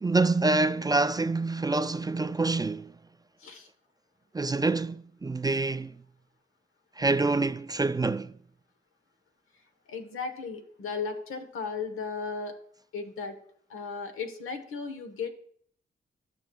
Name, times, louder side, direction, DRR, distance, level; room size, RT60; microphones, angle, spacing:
voice 1, 0.0-2.9 4.3-5.9 7.0-8.3, right 3 dB, 20° right, 0.3 m, -26 dB
voice 2, 9.9-12.6 12.9-13.4 13.7-15.3, left 5 dB, 85° left, 1.1 m, -35 dB
15.5 x 5.7 x 2.3 m
cardioid pair, 65°, 21 cm